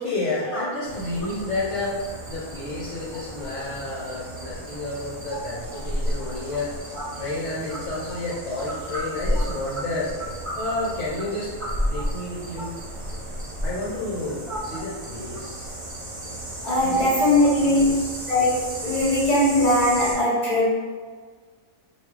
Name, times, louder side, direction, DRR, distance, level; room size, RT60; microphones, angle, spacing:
voice 1, 0.0-2.0 2.3-6.7 7.1-10.1 10.6-11.5 11.9-12.7 13.6-15.7 16.8-17.1 17.6-18.1, left 2 dB, 60° left, -9 dB, 1.2 m, -30 dB
sound 1, 0.8-20.1, equal, 25° right, 0.9 m, -33 dB
voice 2, 16.6-17.9 18.3-18.5 18.8-20.7, left 1 dB, 30° left, -7 dB, 1.6 m, -20 dB
5.3 x 2.5 x 3.3 m, 1.6 s
omnidirectional pair, 1.4 m